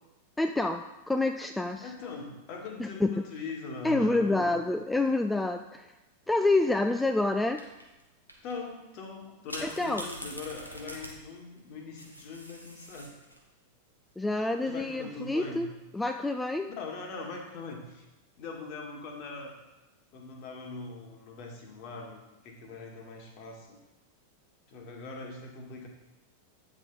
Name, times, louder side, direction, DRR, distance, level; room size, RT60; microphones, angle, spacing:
voice 1, 0.4-1.9 2.8-3.3 3.8-5.9 6.3-7.6 9.6-10.0 14.2-15.7 15.9-16.7, left 2 dB, 5° left, 6 dB, 0.4 m, -28 dB
voice 2, 1.8-4.5 8.4-13.1 14.6-15.7 16.7-18.0 18.4-19.5 20.1-22.2 22.4-23.8 24.7-25.9, left 4 dB, 40° left, 2 dB, 1.8 m, -41 dB
sound 1, 6.3-6.7 7.6-8.0 8.3-8.5 9.5-13.5 15.1-15.6, equal, 90° left, 1.5 m, -44 dB
9.7 x 6.3 x 4.1 m, 0.99 s
figure-of-eight pair, 90°, 0 cm